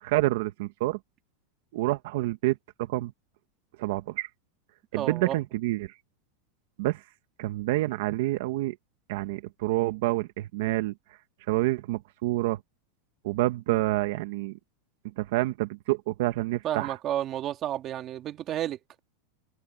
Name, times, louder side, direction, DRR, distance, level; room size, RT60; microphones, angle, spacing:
voice 1, 0.0-1.0 1.7-3.1 3.8-4.3 4.9-5.9 6.8-7.0 7.4-8.8 9.1-10.9 11.5-12.6 13.2-14.6 15.2-17.0, right 18 dB, 65° right, 1.4 m, -28 dB
voice 2, 4.9-5.4 16.6-18.8, right 11 dB, 30° right, 1.9 m, -31 dB
supercardioid pair, 155°, 0 cm